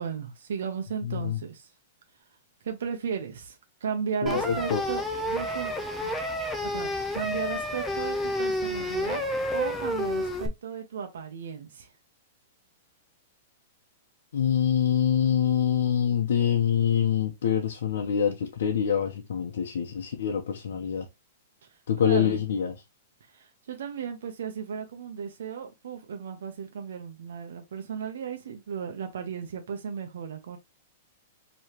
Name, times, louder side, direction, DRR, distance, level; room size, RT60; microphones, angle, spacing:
voice 1, 0.0-1.7 2.6-5.7 6.0-6.1 6.6-9.2 9.5-11.9 21.7-22.4 23.3-30.6, right 7 dB, 75° right, 0.8 m, -35 dB
voice 2, 1.0-1.4 4.2-4.8 14.3-21.1 21.9-22.7, left 8 dB, 85° left, 0.8 m, -25 dB
sound 1, 4.3-10.5, left 1 dB, 5° left, 0.5 m, -30 dB
4.8 x 3.1 x 2.9 m
supercardioid pair, 175°, 0 cm